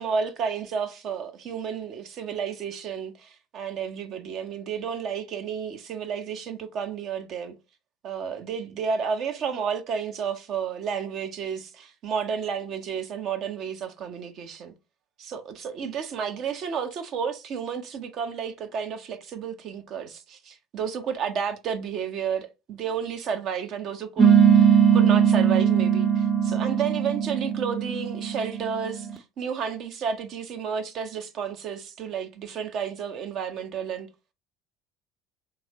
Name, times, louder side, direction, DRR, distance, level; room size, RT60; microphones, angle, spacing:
voice 1, 0.0-7.5 8.0-14.7 15.2-34.1, right 7 dB, 45° right, 0.8 m, -31 dB
sound 1, 24.2-29.1, right 8 dB, 15° right, 0.6 m, -20 dB
3.5 x 3.2 x 4.0 m
figure-of-eight pair, 65°, 0 cm